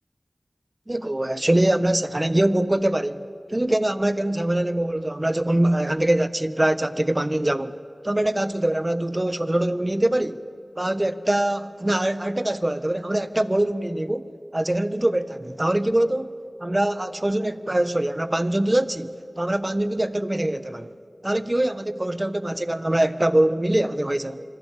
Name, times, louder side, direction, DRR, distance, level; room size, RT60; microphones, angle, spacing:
voice 1, 0.9-3.2 3.5-7.8 8.0-10.4 10.8-16.3 16.6-20.9 21.2-24.4, right 1 dB, 30° right, 1.1 m, -23 dB
25.5 x 25.5 x 8.5 m
wide cardioid pair, 45°, 0 cm